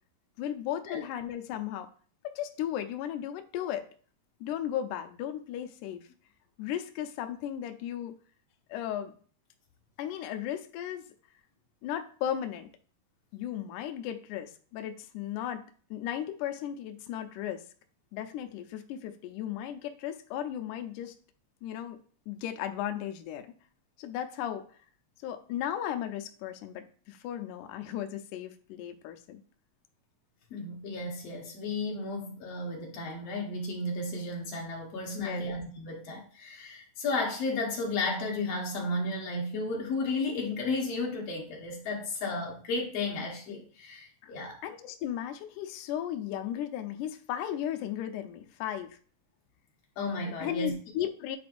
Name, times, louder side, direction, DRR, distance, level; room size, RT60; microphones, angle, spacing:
voice 1, 0.4-1.9 2.2-3.8 4.4-6.1 6.6-8.2 8.7-9.1 10.0-11.1 11.8-12.7 13.3-15.6 15.9-17.6 18.1-21.1 21.6-22.0 22.3-23.5 24.0-24.6 25.2-29.4 35.1-35.5 44.2-44.3 44.6-49.0 50.4-51.4, left 10 dB, 80° left, 7 dB, 1.9 m, -35 dB
voice 2, 30.5-44.6 50.0-50.7, left 2 dB, 60° left, 0 dB, 1.9 m, -33 dB
9.5 x 4.2 x 2.5 m, 0.43 s
omnidirectional pair, 4.0 m